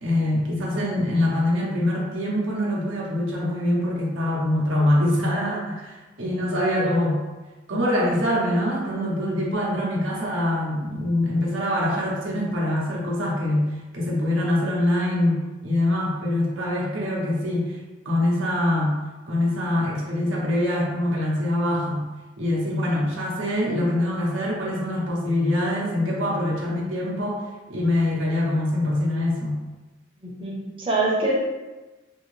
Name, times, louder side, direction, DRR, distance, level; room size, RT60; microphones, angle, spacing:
voice 1, 0.0-7.2 7.7-17.8 18.0-19.0 19.3-22.1 22.4-27.4 27.7-29.6, left 1 dB, 80° right, -3 dB, 0.8 m, -24 dB
voice 2, 30.2-31.3, right 2 dB, 30° right, -5 dB, 0.7 m, -25 dB
2.8 x 2.7 x 3.1 m, 1.2 s
head